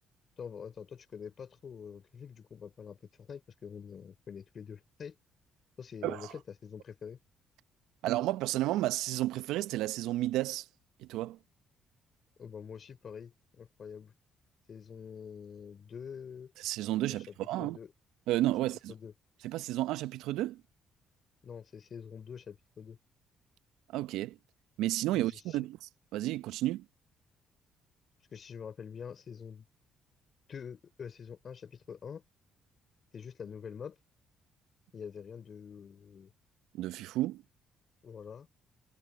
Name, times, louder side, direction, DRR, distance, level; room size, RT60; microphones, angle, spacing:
voice 1, 0.4-5.1 5.8-7.2 12.4-14.1 14.7-16.5 17.1-17.9 18.9-19.1 21.4-23.0 25.1-25.7 28.3-29.6 30.5-32.2 33.1-34.0 34.9-36.3 38.0-38.5, left 7 dB, 50° left, 4.7 m, -46 dB
voice 2, 8.0-10.6 11.0-11.4 16.6-17.8 18.3-18.9 19.4-20.6 23.9-24.4 24.8-26.8 36.7-37.4, right 15 dB, 75° right, 0.9 m, -32 dB
hypercardioid pair, 50°, 0 cm